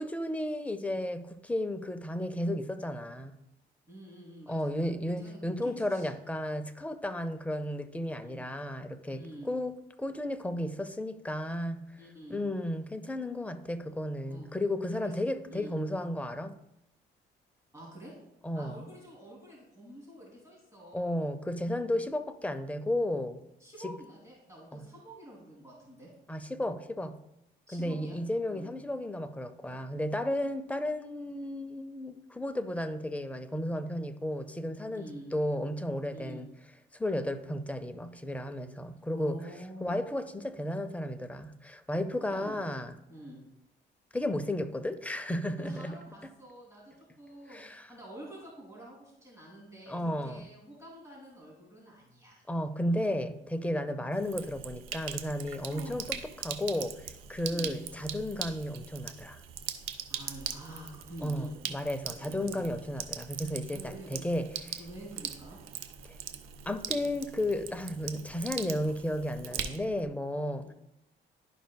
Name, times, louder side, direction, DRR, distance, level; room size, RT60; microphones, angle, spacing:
voice 1, 0.0-3.3 4.5-12.0 12.3-16.6 18.4-18.8 20.9-23.4 23.8-23.9 24.7-24.8 26.3-27.2 27.7-36.5 36.9-39.4 39.8-42.9 44.1-46.0 47.5-47.9 49.9-50.4 52.5-59.4 61.2-64.8 66.1-66.2 66.7-70.7, left 1 dB, 5° left, 0.6 m, -33 dB
voice 2, 3.9-6.2 8.2-8.5 9.1-9.5 12.0-12.4 14.3-14.5 15.0-15.1 15.5-15.7 17.7-18.1 18.5-21.3 23.6-26.1 27.7-28.2 28.5-28.7 34.9-35.3 36.1-36.4 39.1-40.0 42.1-42.6 43.1-43.4 45.6-52.4 52.8-53.2 55.7-56.0 57.5-57.8 60.1-61.5 62.2-62.8 63.7-64.3 64.8-65.6 70.6-70.7, right 1 dB, 15° right, 2.8 m, -47 dB
Sink (filling or washing), 54.1-70.1, right 9 dB, 90° right, 0.6 m, -41 dB
11.5 x 5.2 x 2.3 m
cardioid pair, 90°, 20 cm